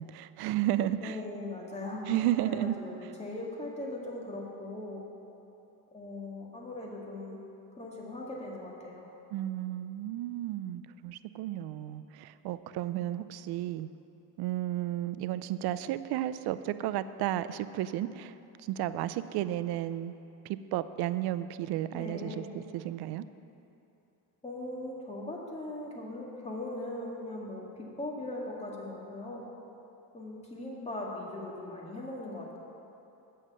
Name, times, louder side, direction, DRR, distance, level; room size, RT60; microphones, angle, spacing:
voice 1, 0.0-1.2 2.1-2.7 3.0-3.1 9.3-13.9 14.4-18.3 18.6-20.1 20.4-23.2, right 13 dB, 70° right, 13 dB, 0.5 m, -33 dB
voice 2, 1.0-5.0 5.9-7.4 7.7-9.1 21.9-22.5 24.4-29.4 30.1-32.6, left 1 dB, 15° left, -3 dB, 2.2 m, -39 dB
8.6 x 6.6 x 7.5 m, 2.9 s
cardioid pair, 100°, 40 cm